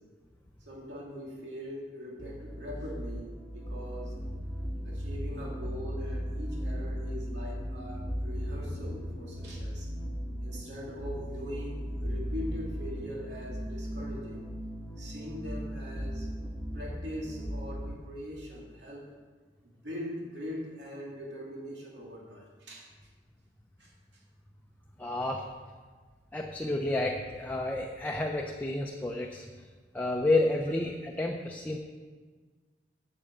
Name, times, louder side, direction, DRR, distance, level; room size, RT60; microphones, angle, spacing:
voice 1, 0.7-4.2 4.8-9.9 10.4-14.5 15.0-16.4 16.7-19.1 19.8-22.9 23.8-23.9, equal, 90° right, -3 dB, 2.5 m, -42 dB
sound 1, 2.2-17.9, equal, 5° right, 1.6 m, -37 dB
voice 2, 25.0-25.4 26.3-29.4 29.9-31.8, left 2 dB, 10° left, 1 dB, 0.7 m, -30 dB
8.5 x 7.9 x 7.3 m, 1.5 s
head